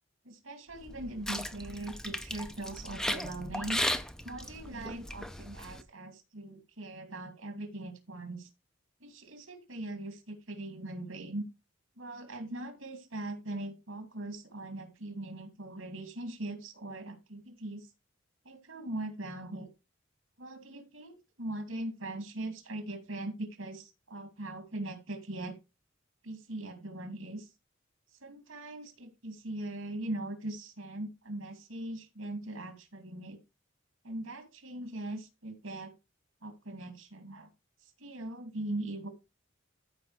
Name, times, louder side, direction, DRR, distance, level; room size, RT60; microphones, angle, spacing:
voice 1, 0.2-3.8 4.2-8.5 9.0-11.4 12.0-17.9 18.4-19.7 20.4-25.6 26.2-27.5 28.2-33.4 34.0-35.9 36.4-37.5 38.0-39.1, right 1 dB, 80° right, 6 dB, 2.6 m, -40 dB
sound 1, 0.8-5.8, left 1 dB, 5° left, 0.5 m, -36 dB
14.0 x 5.3 x 3.3 m, 0.25 s
head